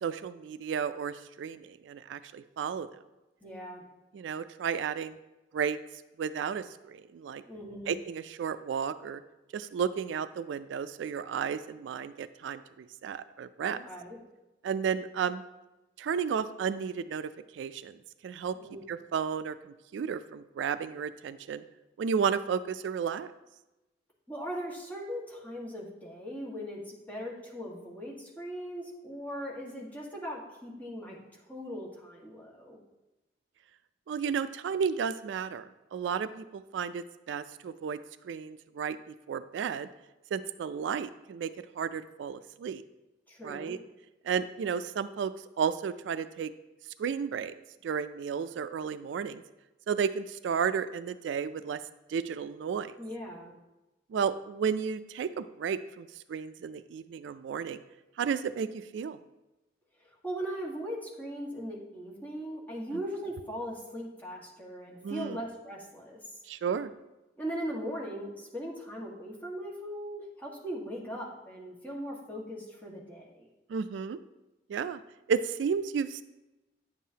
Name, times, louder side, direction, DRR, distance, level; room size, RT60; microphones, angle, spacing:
voice 1, 0.0-2.9 4.1-5.2 5.5-5.8 6.2-7.4 7.9-9.2 9.5-13.8 14.6-15.4 16.0-17.9 18.2-18.6 18.9-21.6 22.0-23.3 34.1-35.6 35.9-38.0 38.2-39.0 39.3-39.9 40.3-41.5 41.8-42.8 43.4-43.8 44.2-45.3 45.6-46.5 47.0-47.5 47.8-49.4 49.9-51.8 52.1-52.9 54.1-57.8 58.2-59.2 65.0-65.4 66.5-66.9 73.7-74.2 74.7-75.0 75.3-76.2, right 6 dB, 80° right, 13 dB, 0.3 m, -33 dB
voice 2, 3.4-3.8 7.5-7.9 13.7-14.2 18.6-18.8 24.3-31.2 31.5-32.8 43.3-43.8 53.0-53.5 60.2-66.2 67.4-73.5, equal, 10° left, -4 dB, 1.5 m, -39 dB
9.3 x 7.3 x 2.8 m, 1.0 s
head